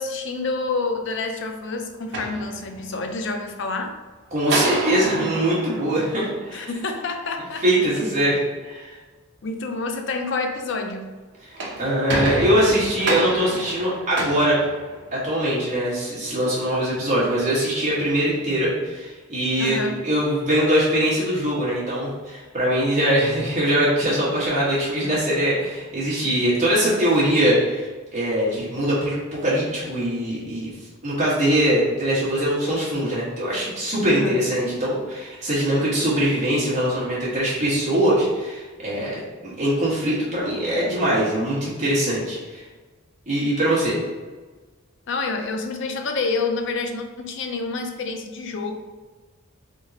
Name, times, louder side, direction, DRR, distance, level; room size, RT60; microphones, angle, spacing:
voice 1, 0.0-4.0 6.5-7.6 9.4-11.1 19.6-20.0 34.1-34.4 45.1-48.7, left 3 dB, 55° left, 5 dB, 0.4 m, -28 dB
sound 1, 1.9-3.1 4.5-6.9 11.3-15.4, right 2 dB, 55° right, 0.7 m, -29 dB
voice 2, 4.3-6.7 7.6-9.0 11.4-11.5 11.8-14.6 15.1-30.7 31.0-42.6 43.3-44.0, right 1 dB, 35° right, -8 dB, 1.4 m, -22 dB
3.7 x 3.6 x 2.8 m, 1.3 s
head